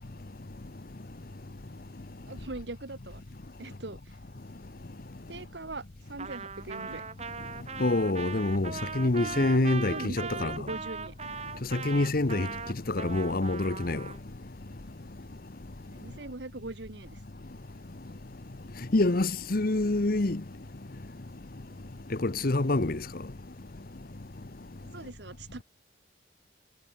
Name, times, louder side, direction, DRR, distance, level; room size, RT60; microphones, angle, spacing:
voice 1, 2.3-3.2 3.6-4.0 5.3-7.0 9.2-11.1 15.9-17.2 24.9-25.6, right 2 dB, 65° right, 1.4 m, -41 dB
Trumpet, 6.2-14.2, right 5 dB, 35° right, 4.5 m, -39 dB
voice 2, 7.8-10.5 11.7-12.5 12.9-14.0 18.9-20.4 22.2-23.0, left 2 dB, 50° left, 1.0 m, -26 dB
head